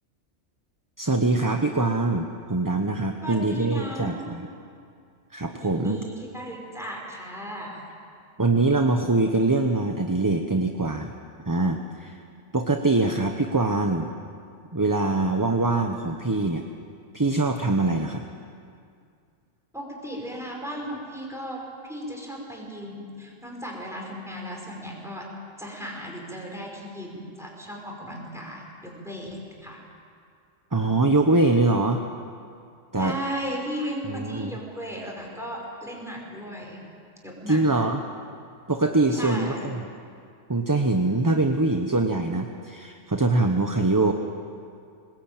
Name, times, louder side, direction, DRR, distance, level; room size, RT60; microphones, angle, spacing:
voice 1, 1.0-4.5 5.3-6.0 8.4-11.1 11.4-12.2 12.5-14.1 14.7-16.7 17.1-18.2 30.7-32.0 32.9-33.2 34.0-34.5 37.5-38.0 38.7-39.8 40.5-44.1, right 2 dB, 20° right, 4 dB, 0.8 m, -23 dB
voice 2, 3.2-4.4 5.6-7.9 19.7-25.3 25.6-29.9 33.0-36.8 37.2-37.6 39.1-39.7, equal, ahead, -1 dB, 5.4 m, -36 dB
23.0 x 20.0 x 9.0 m, 2.3 s
omnidirectional pair, 1.3 m